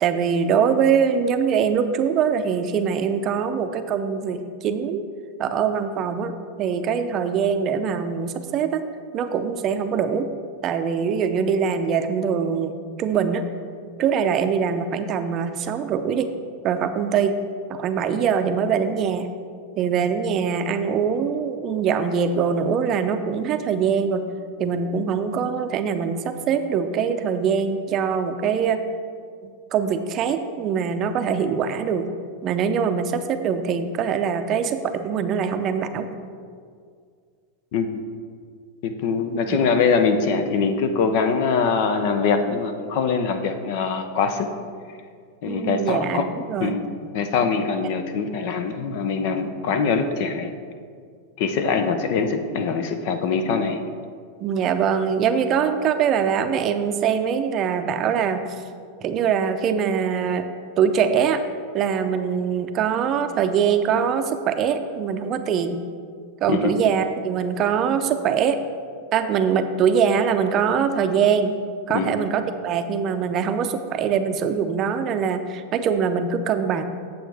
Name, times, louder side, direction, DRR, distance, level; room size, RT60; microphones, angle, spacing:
voice 1, 0.0-5.0 5.4-6.3 6.6-8.9 9.1-10.3 10.6-13.5 14.0-16.3 16.6-17.3 17.7-19.3 19.8-24.2 24.6-28.8 29.7-32.1 32.4-36.1 39.5-39.6 45.5-46.8 54.4-58.4 59.0-60.5 60.8-61.4 61.7-65.8 66.4-68.6 69.1-71.5 71.9-76.8, right 7 dB, 35° right, 8 dB, 0.5 m, -23 dB
voice 2, 37.7-38.0 38.8-44.5 45.4-46.3 46.6-46.8 47.1-50.5 51.4-53.8 66.5-66.7 71.9-72.2, left 5 dB, 60° left, 8 dB, 0.7 m, -23 dB
8.3 x 7.6 x 3.4 m, 2.1 s
supercardioid pair, 135°, 0 cm